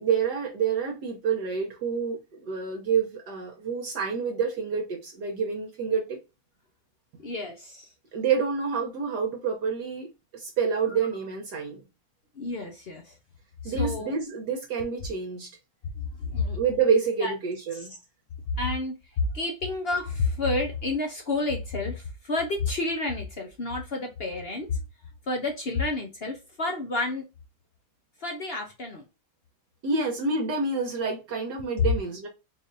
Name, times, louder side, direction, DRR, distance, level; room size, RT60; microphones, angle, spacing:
voice 1, 0.0-6.2 8.1-11.8 13.6-15.5 16.5-17.9 29.8-32.3, right 5 dB, 70° right, 1.4 m, -28 dB
voice 2, 7.2-7.9 10.9-11.0 12.4-13.2 13.6-14.1 16.0-16.6 17.2-17.3 17.7-17.9 18.6-24.8 25.3-27.2 28.2-29.0, left 3 dB, 50° left, 0.7 m, -30 dB
4.0 x 3.3 x 2.6 m
omnidirectional pair, 1.9 m